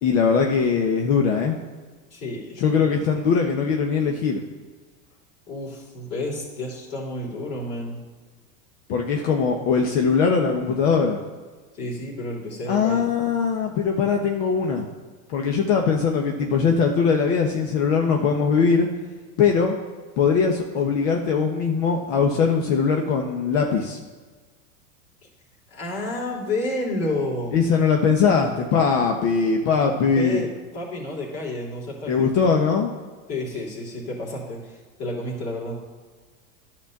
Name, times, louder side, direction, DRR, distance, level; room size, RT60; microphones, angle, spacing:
voice 1, 0.0-1.6 2.6-4.4 8.9-11.2 12.7-14.8 15.3-18.9 19.4-19.7 20.2-24.0 27.5-30.4 32.1-32.9, left 5 dB, 55° left, 2 dB, 1.2 m, -21 dB
voice 2, 2.1-3.3 5.5-8.0 11.7-13.1 25.7-27.5 29.9-32.3 33.3-35.8, left 1 dB, 35° left, -3 dB, 3.2 m, -31 dB
10.5 x 4.4 x 7.3 m, 1.4 s
supercardioid pair, 130°, 39 cm